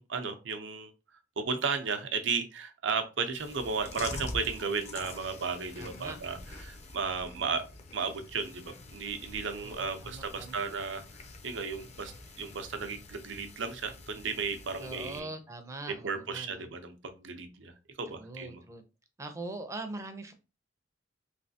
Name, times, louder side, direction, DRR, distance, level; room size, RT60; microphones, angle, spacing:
voice 1, 0.0-7.6 7.9-11.0 11.4-15.3 16.0-17.7 18.0-18.6, right 5 dB, 75° right, 7 dB, 0.6 m, -34 dB
Chewing mastication, 3.4-15.2, left 2 dB, 35° left, 0.5 m, -46 dB
voice 2, 5.8-6.2 9.6-10.6 14.8-16.7 18.1-18.8 19.2-20.3, right 2 dB, 15° right, 6 dB, 0.5 m, -42 dB
3.3 x 3.1 x 2.7 m, 0.30 s
head